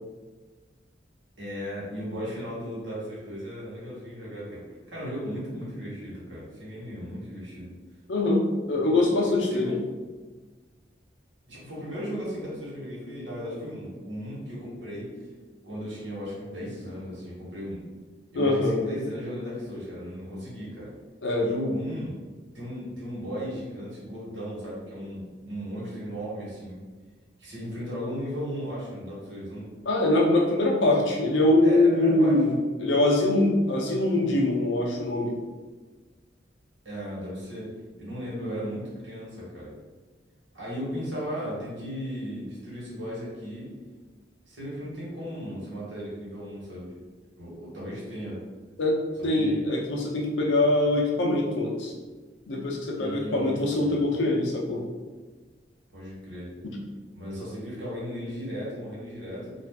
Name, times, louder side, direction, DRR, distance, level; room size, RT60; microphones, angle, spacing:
voice 1, 1.4-4.6 4.9-7.7 8.8-9.8 11.5-15.1 15.6-17.8 18.3-20.9 21.4-22.1 22.5-26.8 27.4-29.7 31.6-32.4 36.8-37.7 38.0-39.7 40.5-43.7 44.5-46.9 47.4-48.4 49.4-49.6 53.0-54.1 55.9-56.5 57.1-59.5, equal, 75° right, -7 dB, 1.3 m, -36 dB
voice 2, 8.1-9.8 18.3-18.8 21.2-21.5 29.9-35.4 48.8-48.9 49.2-51.9 52.5-54.8 56.6-56.8, left 2 dB, 85° left, -1 dB, 0.6 m, -23 dB
2.5 x 2.4 x 3.4 m, 1.3 s
head